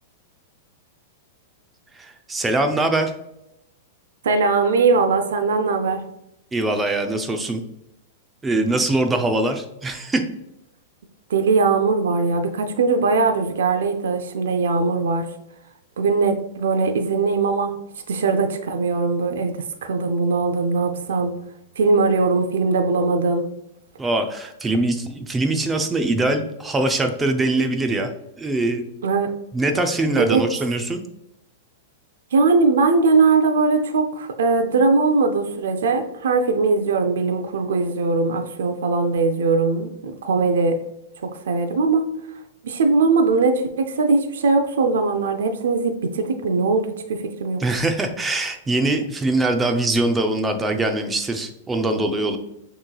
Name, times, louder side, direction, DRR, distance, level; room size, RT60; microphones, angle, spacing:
voice 1, 2.0-3.1 6.5-7.6 8.4-10.2 24.0-28.9 29.5-31.0 47.6-52.4, right 2 dB, 10° right, 6 dB, 0.4 m, -22 dB
voice 2, 4.2-6.0 11.3-15.3 16.0-17.7 18.1-19.5 19.8-21.3 21.8-23.5 29.0-29.3 30.2-30.4 32.3-40.8 41.2-42.1 42.6-47.6, right 4 dB, 85° right, 6 dB, 0.5 m, -20 dB
6.2 x 3.1 x 2.3 m, 0.84 s
supercardioid pair, 155°, 0 cm